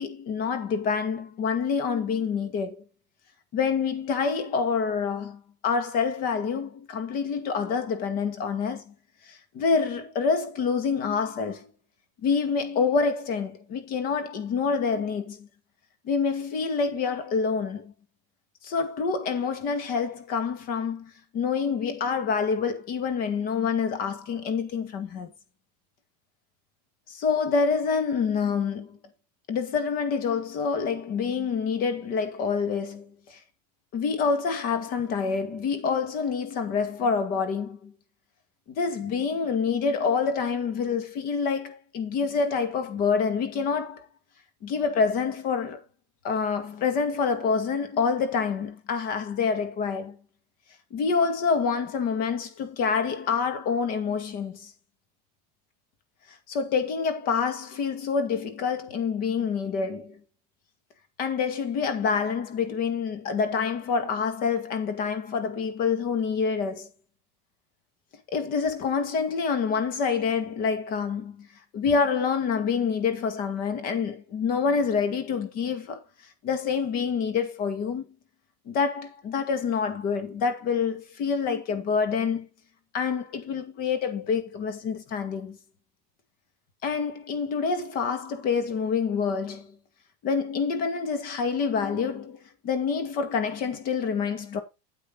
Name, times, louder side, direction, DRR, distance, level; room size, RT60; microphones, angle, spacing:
voice 1, 0.0-2.8 3.5-8.9 9.2-11.7 12.2-15.5 16.0-17.9 18.6-25.3 27.1-29.0 29.5-33.4 33.9-37.9 38.7-44.1 44.6-45.8 46.2-50.2 50.9-54.7 56.3-60.2 61.2-66.9 68.3-71.5 71.7-76.0 76.4-78.1 78.7-82.5 82.9-85.6 86.8-89.8 90.2-94.6, left 5 dB, 45° left, 2.2 m, -27 dB
8.8 x 8.3 x 3.9 m
supercardioid pair, 135°, 21 cm